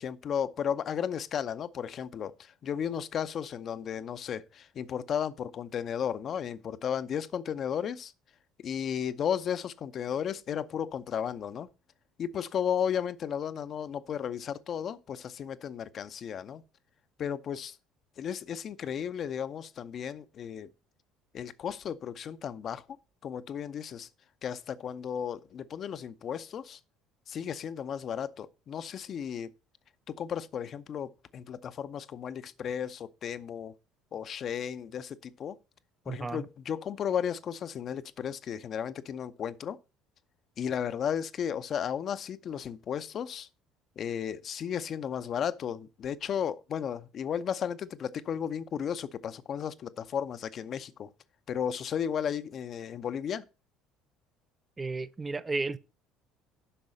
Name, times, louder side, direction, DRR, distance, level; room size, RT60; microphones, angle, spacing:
voice 1, 0.0-8.1 8.6-11.7 12.2-16.6 17.2-17.8 18.2-20.7 21.3-22.9 23.2-24.1 24.4-26.8 27.3-29.5 30.1-33.7 34.1-35.6 36.1-39.8 40.6-43.5 44.0-51.1 51.5-53.4, left 8 dB, 40° left, 0.6 m, -34 dB
voice 2, 36.1-36.4 54.8-55.8, right 3 dB, 20° right, 0.6 m, -33 dB
10.0 x 6.2 x 5.4 m
figure-of-eight pair, 55°, 0 cm